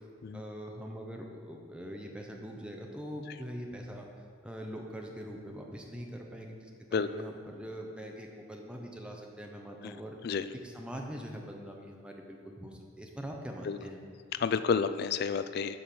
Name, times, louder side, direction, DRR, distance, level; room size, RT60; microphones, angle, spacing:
voice 1, 0.3-4.1 4.4-10.2 10.6-14.0, equal, 5° right, 1 dB, 0.7 m, -43 dB
voice 2, 14.3-15.8, left 6 dB, 50° left, 12 dB, 0.3 m, -30 dB
10.0 x 3.9 x 6.7 m, 2.3 s
head